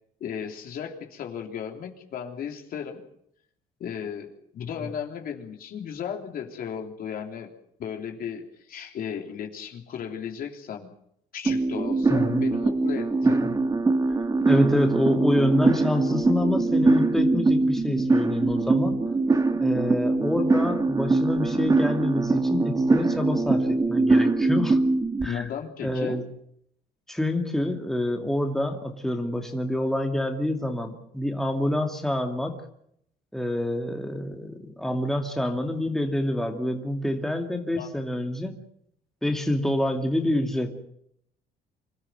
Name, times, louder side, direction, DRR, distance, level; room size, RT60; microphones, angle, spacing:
voice 1, 0.2-3.0 3.8-7.5 7.8-10.9 11.3-13.4 25.2-26.2 37.7-37.9, left 8 dB, 60° left, 3 dB, 3.4 m, -35 dB
sound 1, 11.5-25.3, right 3 dB, 20° right, 2.0 m, -23 dB
voice 2, 12.1-12.4 13.2-13.5 14.5-19.0 19.6-24.8 25.2-25.5 25.8-26.2 27.1-32.6 33.3-38.5 39.2-40.8, left 1 dB, ahead, 3 dB, 2.5 m, -27 dB
26.0 x 13.5 x 9.3 m, 0.73 s
cardioid pair, 110°, 17 cm